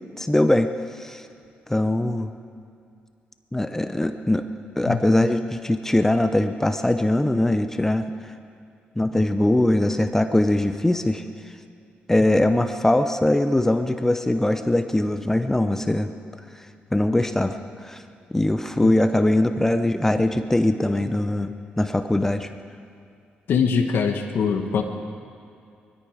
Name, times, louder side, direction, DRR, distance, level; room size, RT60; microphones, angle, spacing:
voice 1, 0.2-0.7 1.0-1.2 1.7-2.3 3.5-4.4 4.8-8.1 9.0-11.2 12.1-16.1 16.9-18.0 18.3-21.5 21.8-22.5, left 1 dB, 10° left, 8 dB, 0.8 m, -21 dB
voice 2, 23.5-24.8, left 6 dB, 70° left, 4 dB, 1.2 m, -22 dB
20.5 x 14.0 x 5.0 m, 2.5 s
cardioid pair, 85°, 4 cm